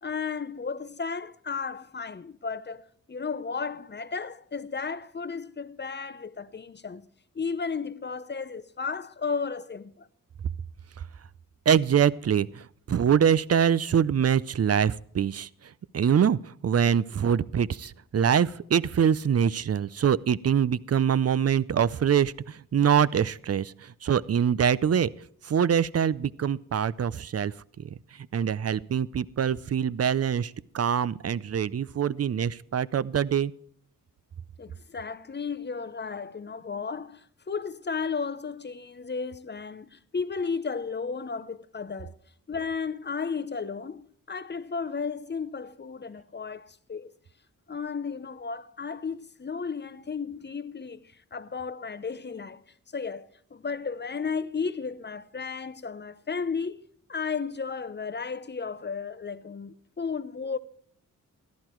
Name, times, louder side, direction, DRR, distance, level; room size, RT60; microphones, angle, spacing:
voice 1, 0.0-7.1 7.3-10.1 34.6-42.2 42.5-47.1 47.7-52.6 52.9-56.8 57.1-60.6, left 5 dB, 30° left, 0.7 m, -34 dB
voice 2, 11.7-15.5 15.9-25.1 25.5-27.5 28.3-33.5, right 8 dB, 45° right, 0.5 m, -24 dB
14.5 x 11.5 x 4.5 m
wide cardioid pair, 115°, 34 cm